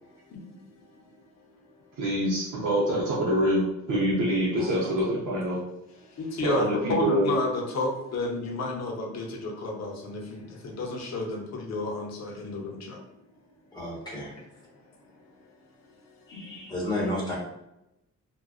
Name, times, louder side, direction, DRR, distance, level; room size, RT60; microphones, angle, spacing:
voice 1, 0.0-1.7 6.0-13.3 14.3-16.8, left 2 dB, 55° left, 0.6 m, -33 dB
voice 2, 2.0-5.6 6.4-7.3, equal, 75° right, 0.7 m, -25 dB
voice 3, 13.7-14.3 16.3-17.4, left 1 dB, 15° left, 0.9 m, -31 dB
2.5 x 2.1 x 2.3 m
wide cardioid pair, 135°, 31 cm